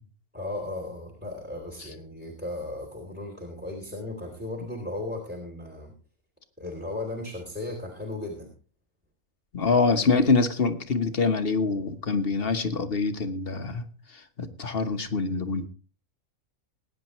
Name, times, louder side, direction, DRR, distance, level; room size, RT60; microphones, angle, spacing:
voice 1, 0.3-5.9 6.6-8.5, left 2 dB, 5° right, 1 dB, 3.0 m, -36 dB
voice 2, 9.5-13.8 14.1-15.7, left 4 dB, 40° left, 8 dB, 1.3 m, -25 dB
21.0 x 9.9 x 3.1 m, 0.37 s
omnidirectional pair, 1.6 m